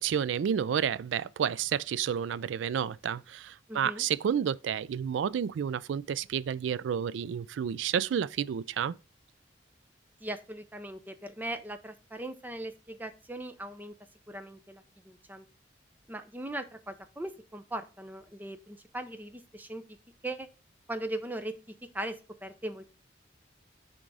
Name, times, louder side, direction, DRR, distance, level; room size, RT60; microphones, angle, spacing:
voice 1, 0.0-9.0, right 8 dB, 75° right, 0.3 m, -30 dB
voice 2, 3.7-4.0 10.2-13.9 14.3-15.5 16.1-19.8 20.2-20.5 20.9-21.5 21.9-22.8, right 1 dB, 10° right, 0.4 m, -39 dB
6.0 x 3.7 x 4.7 m
head